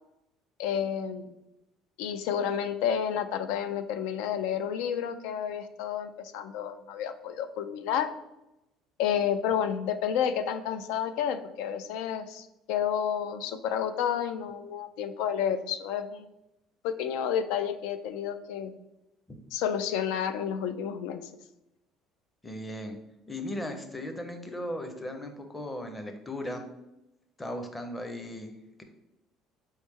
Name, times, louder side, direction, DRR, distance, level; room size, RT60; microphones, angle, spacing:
voice 1, 0.6-1.3 2.0-8.1 9.0-16.2 16.8-18.7 19.5-21.2, left 8 dB, 90° left, 9 dB, 0.3 m, -30 dB
voice 2, 22.4-23.0 23.3-26.7 27.4-28.5, left 1 dB, 10° left, 5 dB, 0.5 m, -37 dB
4.3 x 3.1 x 3.4 m, 0.90 s
cardioid pair, 145°, 0 cm